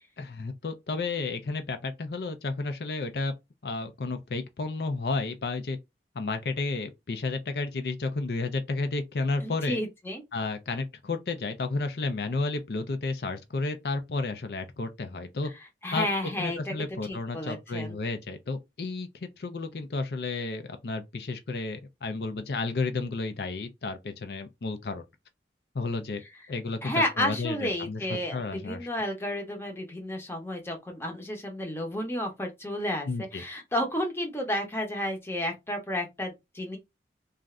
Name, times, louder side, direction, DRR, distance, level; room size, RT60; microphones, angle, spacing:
voice 1, 0.2-3.3 3.6-5.8 6.2-9.8 10.3-15.5 15.9-16.1 16.4-25.0 25.7-26.2 26.5-28.9 33.1-33.4, left 3 dB, 60° left, 0.5 m, -32 dB
voice 2, 9.4-10.2 15.8-16.7 17.0-18.0 26.8-36.8, left 1 dB, 15° left, 0.8 m, -32 dB
2.5 x 2.4 x 3.1 m
head